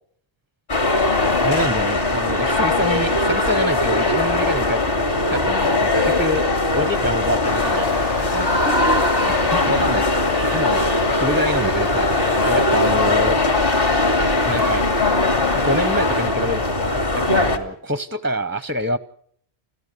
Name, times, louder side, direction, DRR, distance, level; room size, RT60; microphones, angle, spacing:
sound 1, 0.7-17.6, left 2 dB, 55° left, 2.6 m, -20 dB
voice 1, 1.4-7.9 8.3-10.1 10.5-13.4 14.5-14.8 15.6-19.0, equal, 10° right, 13 dB, 0.7 m, -26 dB
sound 2, 7.4-16.3, left 3 dB, 85° left, 2.2 m, -32 dB
30.0 x 13.0 x 6.8 m, 0.64 s
omnidirectional pair, 1.2 m